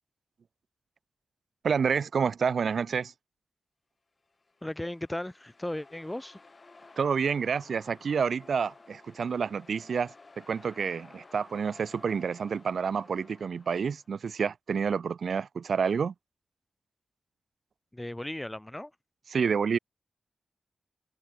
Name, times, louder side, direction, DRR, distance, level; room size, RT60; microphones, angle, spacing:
voice 1, 1.6-3.1 7.0-16.1 19.3-19.8, right 6 dB, 60° right, 3.9 m, -29 dB
sound 1, 4.3-14.2, left 3 dB, 30° left, 7.3 m, -55 dB
voice 2, 4.6-6.4 17.9-18.9, left 1 dB, 10° left, 3.4 m, -36 dB
wide cardioid pair, 150°, 0 cm